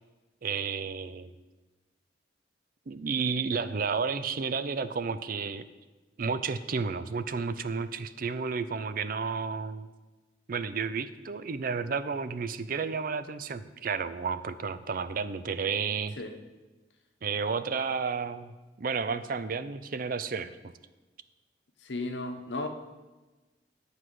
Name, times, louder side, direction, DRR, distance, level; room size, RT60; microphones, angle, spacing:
voice 1, 0.4-1.3 2.9-5.7 6.2-9.9 10.5-16.2 17.2-18.5 18.8-20.7, right 5 dB, 50° right, 13 dB, 0.5 m, -32 dB
voice 2, 21.8-22.7, left 2 dB, 85° left, 6 dB, 1.0 m, -34 dB
9.6 x 4.9 x 7.8 m, 1.2 s
head